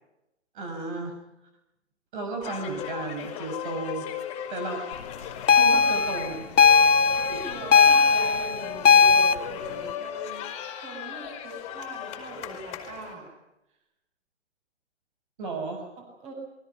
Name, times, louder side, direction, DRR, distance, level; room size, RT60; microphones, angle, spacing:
voice 1, 0.5-1.2 2.1-4.1 4.5-5.0 5.5-6.5 15.4-15.9, right 3 dB, 45° right, 4 dB, 6.3 m, -34 dB
sound 1, 2.4-13.1, left 10 dB, 20° left, 4.9 m, -37 dB
sound 2, 5.5-9.4, left 5 dB, 90° left, 1.1 m, -18 dB
voice 2, 6.8-10.4 10.7-13.3 16.0-16.3, right 2 dB, 20° right, 3 dB, 7.9 m, -41 dB
28.0 x 23.5 x 5.8 m, 0.88 s
hypercardioid pair, 155°, 36 cm